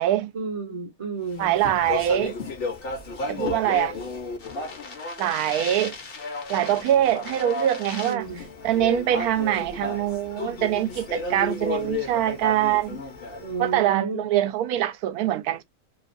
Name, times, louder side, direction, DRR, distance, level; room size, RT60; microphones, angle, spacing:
voice 1, 0.3-1.6 8.0-8.5 13.4-14.3, right 4 dB, 35° right, 0.5 m, -32 dB
Speech, 1.3-13.7, left 3 dB, 50° left, 0.9 m, -33 dB
voice 2, 1.4-2.4 3.3-3.9 5.2-5.9 6.5-8.3 8.6-13.0 13.6-15.6, right 12 dB, 80° right, 1.0 m, -23 dB
2.9 x 2.2 x 2.5 m
omnidirectional pair, 1.6 m